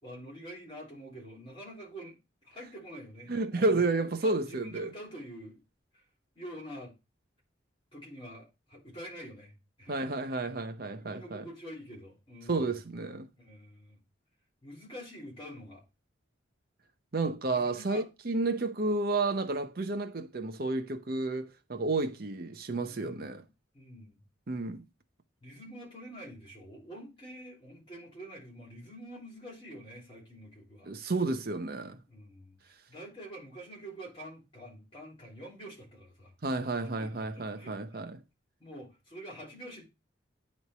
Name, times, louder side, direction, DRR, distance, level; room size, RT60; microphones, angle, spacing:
voice 1, 0.0-2.2 2.4-3.8 4.0-5.6 5.9-6.0 6.3-6.9 7.9-10.4 11.0-12.8 13.4-14.0 14.6-15.8 17.4-18.0 22.9-23.5 23.7-24.2 25.4-30.9 32.1-32.6 32.9-36.3 37.0-38.0 38.6-39.8, equal, 30° left, 3.2 m, -47 dB
voice 2, 3.3-4.9 9.9-11.5 12.5-13.3 17.1-23.4 24.5-24.8 30.9-32.0 36.4-38.2, right 3 dB, 50° right, 0.7 m, -31 dB
9.5 x 3.2 x 4.2 m
head